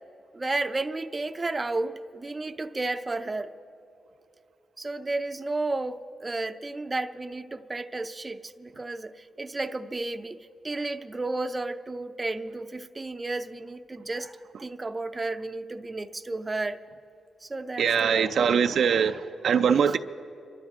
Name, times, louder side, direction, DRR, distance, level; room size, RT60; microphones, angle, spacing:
voice 1, 0.3-3.5 4.8-16.8 17.4-18.7, right 2 dB, 25° right, 0.6 m, -32 dB
voice 2, 17.8-20.0, right 7 dB, 70° right, 0.5 m, -22 dB
27.5 x 12.5 x 3.6 m
cardioid pair, 75°, 0 cm